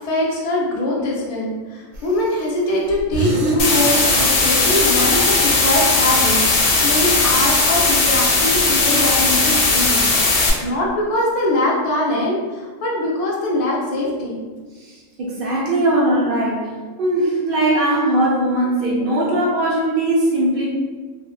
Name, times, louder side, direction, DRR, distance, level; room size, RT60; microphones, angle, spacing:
voice 1, 0.0-10.0 10.3-14.5, left 1 dB, 65° left, -3 dB, 0.3 m, -22 dB
sound 1, 1.9-2.6 2.9-4.9 5.9-7.4, right 3 dB, 85° right, 1.0 m, -30 dB
sound 2, 3.6-10.5, left 3 dB, 85° left, 0.9 m, -17 dB
voice 2, 14.8-16.7 17.0-20.7, right 1 dB, 60° right, -5 dB, 0.6 m, -19 dB
2.6 x 2.1 x 2.3 m, 1.4 s
omnidirectional pair, 1.3 m